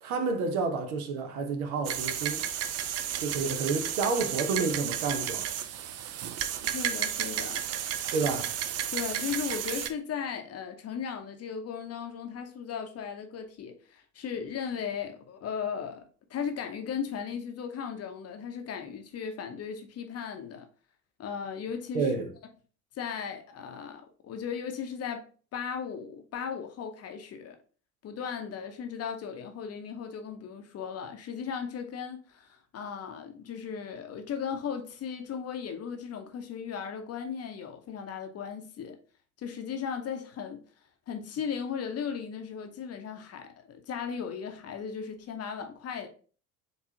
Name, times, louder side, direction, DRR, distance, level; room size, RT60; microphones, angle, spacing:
voice 1, 0.0-2.4 3.2-5.5 8.1-8.5 21.9-22.3, right 4 dB, 70° right, 0.9 m, -30 dB
sound 1, 1.8-9.9, right 10 dB, 35° right, 0.4 m, -32 dB
voice 2, 6.6-7.6 8.9-20.7 21.2-22.1 22.9-25.2 25.5-27.6 28.0-39.0 39.4-40.6 41.1-46.1, left 7 dB, 35° left, 0.7 m, -36 dB
4.5 x 3.3 x 2.8 m
figure-of-eight pair, 60°, 45 cm